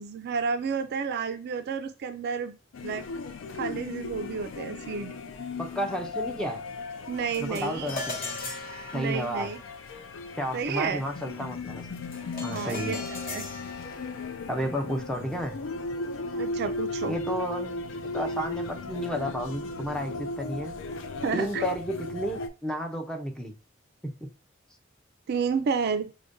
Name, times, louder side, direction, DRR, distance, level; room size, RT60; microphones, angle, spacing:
voice 1, 0.0-2.5 2.8-3.0 3.5-5.1 7.1-8.0 8.9-9.6 10.5-11.0 12.4-13.4 16.3-17.2 21.2-21.7 25.3-26.1, right 6 dB, 55° right, 0.3 m, -31 dB
sound 1, 2.7-22.5, left 3 dB, 70° left, 0.4 m, -36 dB
voice 2, 5.6-6.6 7.4-8.5 8.9-9.5 10.4-12.0 12.4-13.0 14.5-15.6 17.0-20.7 21.3-23.5 24.0-24.1, equal, 5° left, 0.5 m, -32 dB
sound 2, 7.3-16.8, left 3 dB, 45° left, 0.8 m, -41 dB
4.8 x 2.2 x 2.5 m
head